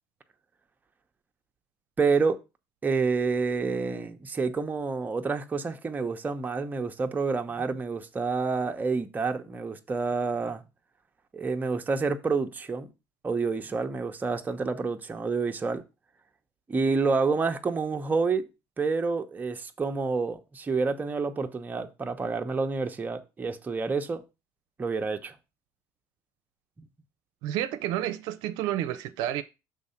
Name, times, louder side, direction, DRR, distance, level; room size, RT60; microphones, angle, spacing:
voice 1, 2.0-2.4 2.8-10.6 11.3-12.9 13.2-15.8 16.7-18.4 18.8-24.2 24.8-25.3 26.8-26.9, right 4 dB, 25° right, 0.8 m, -28 dB
voice 2, 27.4-29.4, right 12 dB, 80° right, 0.5 m, -30 dB
6.1 x 3.8 x 5.6 m
supercardioid pair, 100°, 7 cm